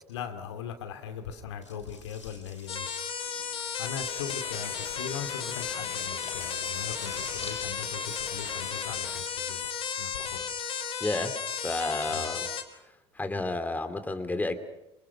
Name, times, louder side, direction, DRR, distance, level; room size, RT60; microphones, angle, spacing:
voice 1, 0.1-2.9 3.8-9.7 10.0-10.4 12.1-12.4, left 8 dB, 65° left, 7 dB, 2.8 m, -39 dB
sound 1, 1.6-8.5, left 3 dB, 80° left, 6.4 m, -49 dB
sound 2, 2.7-12.6, left 7 dB, 35° left, 4.1 m, -34 dB
sound 3, 4.1-9.2, left 8 dB, 50° left, 5.3 m, -45 dB
voice 2, 11.0-12.5 13.2-14.6, left 2 dB, 10° left, 9 dB, 2.7 m, -31 dB
28.0 x 27.5 x 5.9 m, 0.89 s
figure-of-eight pair, 65°, 15 cm